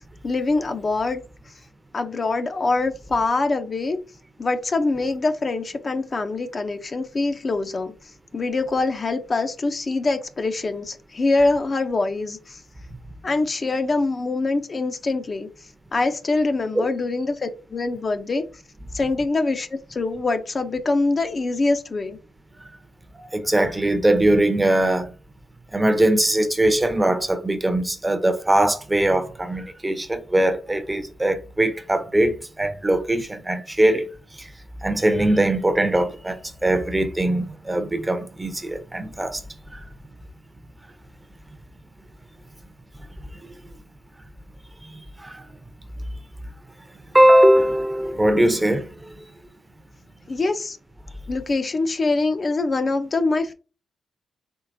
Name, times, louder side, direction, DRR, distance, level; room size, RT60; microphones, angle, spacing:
voice 1, 0.2-1.2 1.9-4.0 4.4-7.9 8.3-12.6 13.2-15.5 15.9-18.4 18.9-22.2 50.3-50.8 51.3-53.5, left 3 dB, 40° left, 0.6 m, -24 dB
voice 2, 23.3-25.1 25.7-34.1 34.4-34.5 34.8-39.4 39.7-39.8 45.2-45.4 47.1-48.9, right 1 dB, 15° right, 0.6 m, -20 dB
4.5 x 3.1 x 2.6 m
cardioid pair, 95°, 0 cm